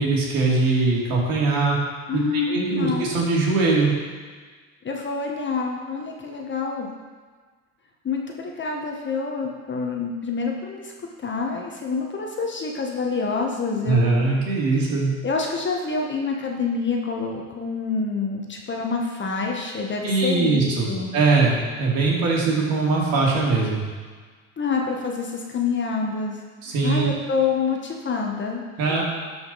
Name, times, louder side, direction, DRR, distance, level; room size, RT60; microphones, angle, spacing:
voice 1, 0.0-1.8 2.5-3.9 13.8-15.1 20.0-23.8 26.6-27.0 28.8-29.0, right 3 dB, 50° right, -3 dB, 2.9 m, -21 dB
voice 2, 2.1-3.0 4.8-6.9 8.0-10.9 11.2-14.3 15.2-20.6 20.9-21.1 24.6-26.4 26.8-29.0, left 4 dB, 25° left, 0 dB, 1.4 m, -27 dB
12.5 x 5.4 x 4.2 m, 1.5 s
hypercardioid pair, 80°, 43 cm